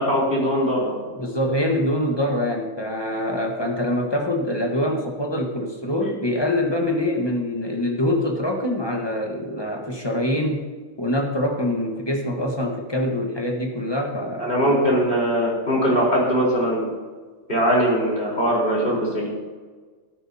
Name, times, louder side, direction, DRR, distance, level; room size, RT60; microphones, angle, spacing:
voice 1, 0.0-1.0 14.4-16.9 17.5-19.3, equal, 35° left, -5 dB, 4.3 m, -21 dB
voice 2, 1.1-10.7 11.0-14.5, left 1 dB, 20° left, 1 dB, 1.4 m, -24 dB
13.5 x 12.5 x 2.9 m, 1.4 s
omnidirectional pair, 1.5 m